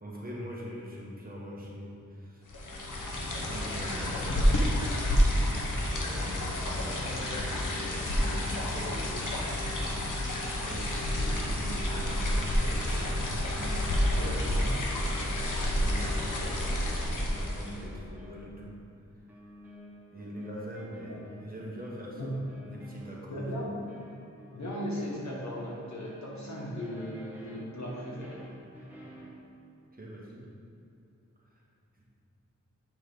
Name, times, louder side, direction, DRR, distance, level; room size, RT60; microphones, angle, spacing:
voice 1, 0.0-2.7 3.4-13.4 15.5-18.7 20.1-22.3 22.6-23.5 29.9-30.4 31.5-31.6 32.0-32.1, equal, 30° right, -4 dB, 1.3 m, -43 dB
sound 1, 2.5-17.9, left 1 dB, 85° left, 1.0 m, -29 dB
sound 2, 9.5-10.2 10.7-29.4, equal, 5° right, 1.6 m, -50 dB
voice 2, 14.2-14.7 22.2-22.3 23.3-23.8 24.5-28.4, equal, 65° left, -5 dB, 1.6 m, -37 dB
7.7 x 4.0 x 5.1 m, 2.7 s
wide cardioid pair, 80°, 30 cm